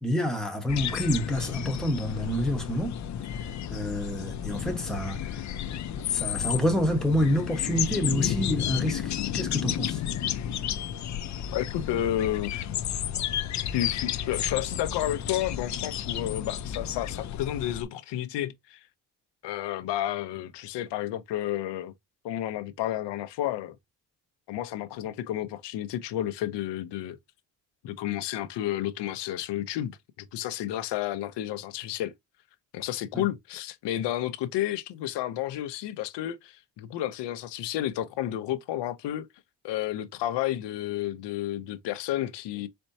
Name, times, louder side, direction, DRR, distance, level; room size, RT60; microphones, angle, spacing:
voice 1, 0.0-3.0 3.7-5.4 6.1-10.0 33.1-33.2, equal, ahead, 1.1 m, -28 dB
sound 1, 0.7-17.8, left 10 dB, 45° left, 0.5 m, -32 dB
voice 2, 11.5-12.7 13.7-18.8 19.4-21.9 22.2-23.8 24.5-27.2 27.8-32.1 32.7-39.3 39.6-42.7, left 12 dB, 85° left, 0.7 m, -31 dB
4.4 x 4.3 x 2.7 m
cardioid pair, 150°, 41 cm